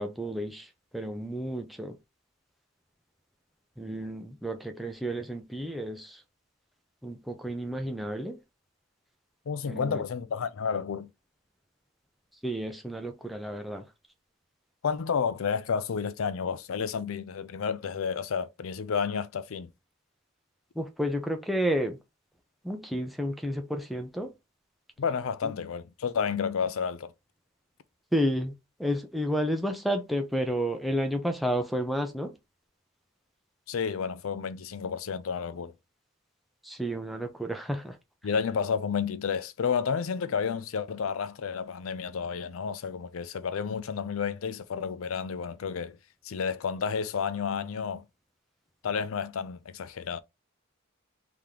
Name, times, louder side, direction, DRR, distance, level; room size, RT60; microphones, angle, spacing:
voice 1, 0.0-2.0 3.8-6.2 7.0-8.4 9.7-10.0 12.4-13.9 20.8-22.0 22.6-24.3 25.4-25.5 28.1-28.5 28.8-32.3 36.6-38.0, equal, ahead, 0.5 m, -31 dB
voice 2, 9.5-11.1 14.8-19.7 25.0-27.1 33.7-35.7 38.2-46.0 46.2-48.0 48.8-50.2, left 6 dB, 80° left, 0.5 m, -31 dB
3.4 x 2.9 x 3.7 m
head